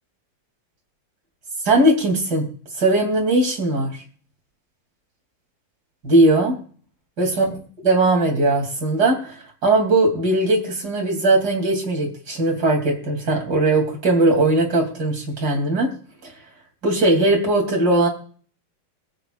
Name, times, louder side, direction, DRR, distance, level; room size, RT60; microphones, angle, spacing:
voice 1, 1.6-2.5 2.8-3.9 6.0-6.5 7.2-7.5 7.8-9.4 9.6-15.9 16.8-18.1, right 2 dB, 50° right, 1 dB, 3.6 m, -19 dB
22.0 x 8.3 x 2.5 m, 0.43 s
omnidirectional pair, 2.2 m